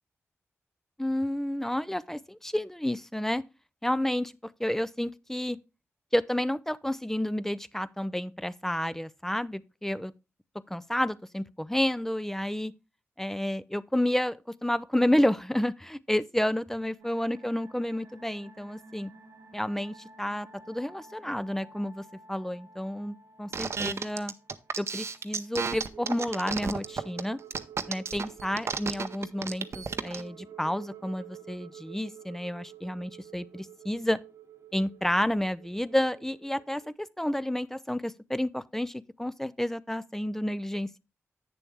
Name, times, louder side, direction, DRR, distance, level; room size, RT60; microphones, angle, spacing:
voice 1, 1.0-3.4 3.8-5.6 6.1-10.1 10.7-12.7 13.2-19.1 19.5-24.3 24.8-27.4 27.9-34.2 34.7-41.0, left 1 dB, 5° left, 0.5 m, -30 dB
sound 1, 17.0-36.9, right 6 dB, 75° right, 1.1 m, -51 dB
sound 2, 23.5-30.2, right 5 dB, 60° right, 0.6 m, -32 dB
8.4 x 6.9 x 3.5 m
cardioid pair, 55°, 5 cm